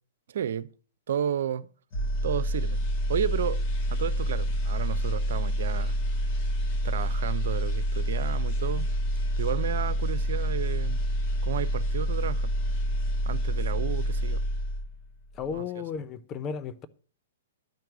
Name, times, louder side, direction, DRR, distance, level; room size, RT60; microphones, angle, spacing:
voice 1, 0.3-0.7 1.1-1.7 2.2-3.6 3.9-6.0 6.8-8.9 9.4-11.1 11.4-12.5 13.2-14.4 15.5-15.8, right 9 dB, 60° right, 0.6 m, -32 dB
sound 1, 1.9-15.1 15.4-15.6, equal, 45° left, 1.9 m, -28 dB
voice 2, 15.3-16.9, left 7 dB, 30° left, 1.0 m, -34 dB
12.0 x 4.6 x 7.7 m
figure-of-eight pair, 110°, 0 cm